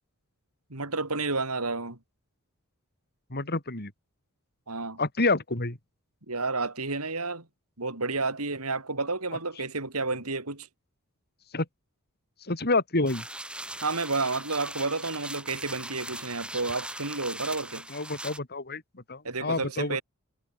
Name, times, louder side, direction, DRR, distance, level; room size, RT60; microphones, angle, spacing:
voice 1, 0.7-2.0 4.7-5.0 6.3-7.5 7.8-10.7 13.8-17.9 19.2-20.0, right 3 dB, 85° right, 5.0 m, -31 dB
voice 2, 3.3-3.9 5.0-5.8 11.5-11.7 12.5-13.2 17.9-18.8 19.1-20.0, left 3 dB, 45° left, 3.5 m, -28 dB
sound 1, 13.1-18.4, right 1 dB, 5° right, 4.8 m, -40 dB
head